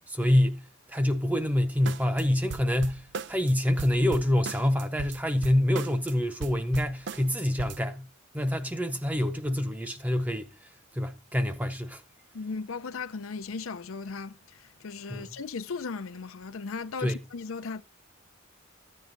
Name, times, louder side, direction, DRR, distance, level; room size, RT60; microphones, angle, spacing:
voice 1, 0.1-8.1 8.3-10.5 10.9-12.0 15.1-15.3 17.0-17.2, left 1 dB, 10° right, 0.6 m, -26 dB
sound 1, 1.9-2.2 2.5-3.5 3.8-6.1 6.4-7.8, right 5 dB, 55° right, 0.5 m, -38 dB
voice 2, 12.3-17.8, left 4 dB, 80° left, 0.6 m, -37 dB
14.0 x 9.4 x 2.5 m
head